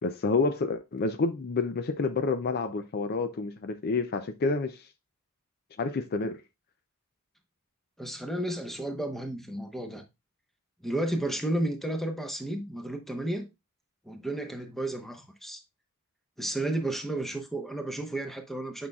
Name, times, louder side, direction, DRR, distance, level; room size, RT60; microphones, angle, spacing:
voice 1, 0.0-4.9 5.8-6.4, left 3 dB, 45° left, 0.5 m, -29 dB
voice 2, 8.0-10.0 10.8-13.5 14.0-15.6 16.4-18.9, right 1 dB, ahead, 0.9 m, -32 dB
8.6 x 5.5 x 2.3 m
head